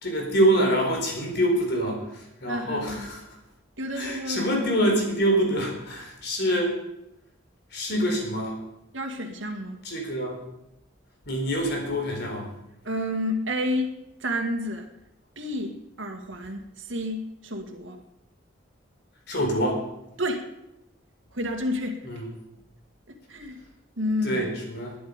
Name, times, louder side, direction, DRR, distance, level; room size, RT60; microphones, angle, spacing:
voice 1, 0.0-3.2 3.9-6.8 7.7-8.6 9.8-10.4 11.3-12.5 19.3-19.8 22.0-22.3 24.2-25.0, right 1 dB, 60° left, 1 dB, 4.2 m, -25 dB
voice 2, 2.5-3.1 3.8-4.4 8.9-9.8 12.8-13.9 14.2-14.9 15.4-18.0 20.2-20.4 21.3-22.0 23.1-23.6 24.0-24.4, left 1 dB, 75° right, 4 dB, 2.1 m, -30 dB
21.0 x 10.0 x 5.2 m, 0.86 s
head